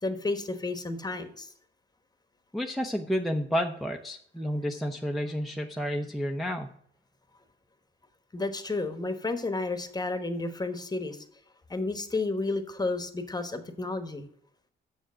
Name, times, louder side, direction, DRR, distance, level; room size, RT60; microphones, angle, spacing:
voice 1, 0.0-1.5 8.3-11.2 11.7-14.3, left 3 dB, 20° left, 9 dB, 1.2 m, -31 dB
voice 2, 2.5-6.7, equal, ahead, 1 dB, 0.7 m, -30 dB
7.2 x 6.5 x 6.2 m, 0.66 s
cardioid pair, 90°, 20 cm